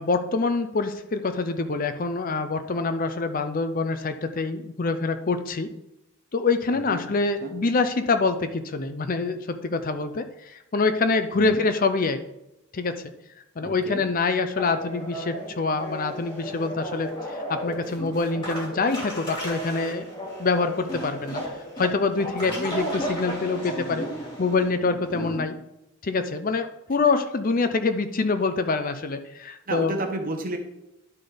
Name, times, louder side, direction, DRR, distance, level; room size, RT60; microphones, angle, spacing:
voice 1, 0.0-5.7 6.3-12.2 12.7-13.1 13.6-20.1 20.4-21.4 21.8-24.1 24.4-25.5 26.0-29.9, left 3 dB, 40° left, 9 dB, 0.5 m, -25 dB
voice 2, 6.7-7.0 7.4-7.5 11.4-11.6 13.6-14.0 22.4-22.7 25.2-25.5 29.7-30.6, right 1 dB, 40° right, 4 dB, 1.1 m, -32 dB
sound 1, 14.6-25.4, equal, 25° left, 2.8 m, -34 dB
11.0 x 4.0 x 5.0 m, 0.90 s
head